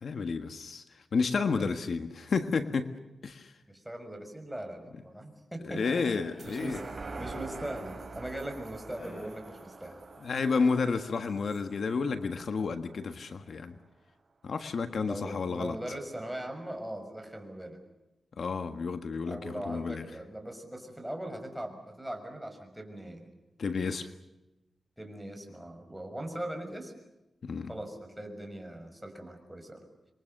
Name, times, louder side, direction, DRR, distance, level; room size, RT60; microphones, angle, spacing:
voice 1, 0.0-2.9 3.2-3.5 5.6-6.8 10.2-13.8 14.4-15.8 18.4-20.1 23.6-24.1 27.4-27.7, left 4 dB, 70° left, 8 dB, 1.5 m, -31 dB
voice 2, 3.7-5.8 6.4-6.8 7.2-10.0 15.0-17.8 19.3-23.3 25.0-26.9 27.7-29.8, right 1 dB, 5° right, 4 dB, 6.2 m, -40 dB
sound 1, 5.7-7.3 9.0-11.6, left 2 dB, 50° left, 6.8 m, -51 dB
sound 2, 6.4-13.2 13.6-13.7, right 3 dB, 45° right, 3.7 m, -45 dB
27.5 x 23.0 x 6.6 m, 1.0 s
cardioid pair, 80°, 0 cm